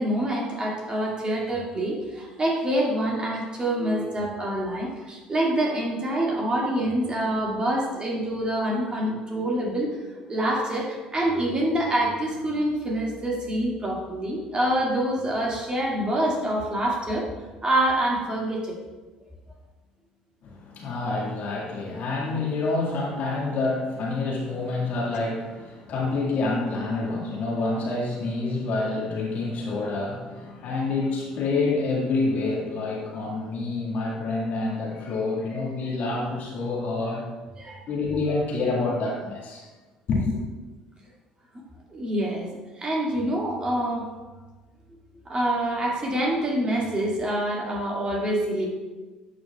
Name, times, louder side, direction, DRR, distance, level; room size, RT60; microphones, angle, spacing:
voice 1, 0.0-17.3 17.6-18.8 37.6-37.8 41.9-42.5 42.7-44.1 45.3-48.7, right 1 dB, 30° right, -2 dB, 2.1 m, -26 dB
voice 2, 20.4-37.3 37.9-39.7 40.1-40.4, left 3 dB, 60° left, -3 dB, 1.8 m, -27 dB
11.0 x 5.1 x 2.3 m, 1.2 s
hypercardioid pair, 60°, 3 cm